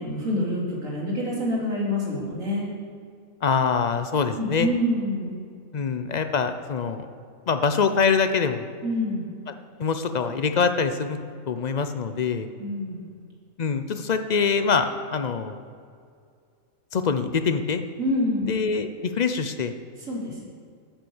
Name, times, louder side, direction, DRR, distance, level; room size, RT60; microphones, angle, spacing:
voice 1, 0.0-2.7 4.4-5.4 8.8-9.3 12.6-13.1 18.0-18.5 20.1-20.4, left 1 dB, 60° right, -4 dB, 3.5 m, -27 dB
voice 2, 3.4-4.7 5.7-7.1 7.5-8.7 9.8-11.2 11.5-12.5 13.6-15.6 16.9-17.8 18.5-19.7, left 5 dB, 55° left, 9 dB, 0.4 m, -24 dB
10.0 x 9.1 x 7.0 m, 2.2 s
omnidirectional pair, 1.6 m